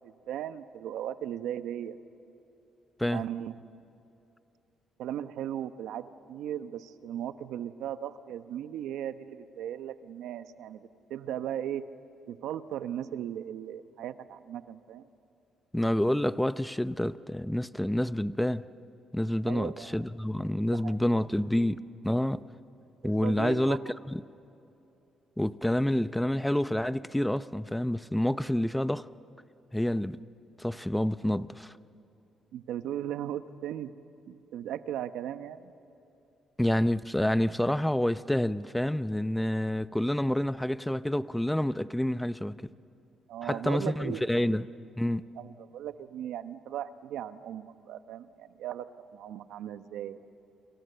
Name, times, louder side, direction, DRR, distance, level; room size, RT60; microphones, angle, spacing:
voice 1, 0.0-2.0 3.1-3.5 5.0-11.8 12.3-15.1 19.5-20.0 20.7-21.2 23.2-24.0 32.5-33.9 34.3-35.7 43.3-44.6 45.4-48.9 49.1-50.2, right 10 dB, 85° right, 1.0 m, -37 dB
voice 2, 15.7-18.6 19.1-22.4 23.0-24.2 25.4-29.1 29.7-30.3 30.6-31.7 36.6-42.7 43.4-44.7 45.0-45.2, left 1 dB, 5° left, 0.7 m, -28 dB
29.5 x 27.0 x 6.9 m
cardioid pair, 90°, 0 cm